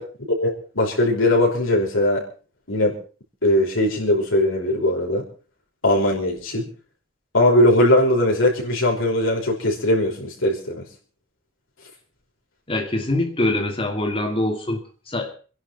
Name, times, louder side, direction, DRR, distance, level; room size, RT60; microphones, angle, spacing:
voice 1, 0.3-2.2 2.7-2.9 3.4-5.2 5.8-6.7 7.3-10.8, left 1 dB, 85° left, -2 dB, 5.3 m, -20 dB
voice 2, 12.7-15.3, left 1 dB, 25° left, 4 dB, 2.7 m, -24 dB
27.0 x 11.0 x 4.4 m, 0.38 s
head